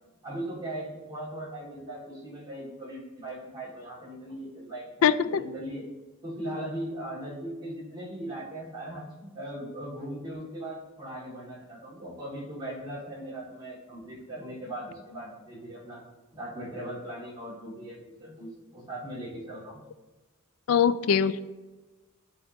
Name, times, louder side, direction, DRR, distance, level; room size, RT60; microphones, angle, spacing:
voice 1, 0.2-5.9 6.2-16.0 16.3-19.8, right 1 dB, 20° right, -7 dB, 2.2 m, -39 dB
voice 2, 5.0-5.4 20.7-21.4, left 7 dB, 65° left, 14 dB, 0.3 m, -22 dB
11.0 x 3.7 x 2.9 m, 1.2 s
head